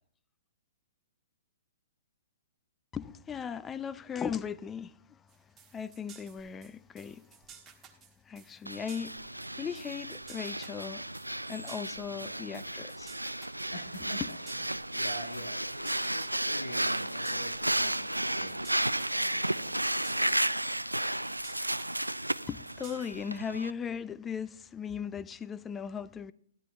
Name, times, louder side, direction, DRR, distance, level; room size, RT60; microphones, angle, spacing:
voice 1, 2.9-5.2 5.7-7.4 8.3-9.3 9.6-11.0 11.5-13.1 14.0-14.3 22.5-26.3, left 7 dB, 15° left, 0.5 m, -38 dB
sound 1, 5.3-23.4, right 7 dB, 20° right, 1.5 m, -55 dB
Breathing, 8.7-23.7, right 1 dB, 90° right, 0.4 m, -33 dB
voice 2, 12.1-12.4 13.7-14.6 14.9-18.6 18.9-20.3, equal, 85° left, 1.4 m, -45 dB
13.0 x 11.5 x 3.5 m
figure-of-eight pair, 115°, 0 cm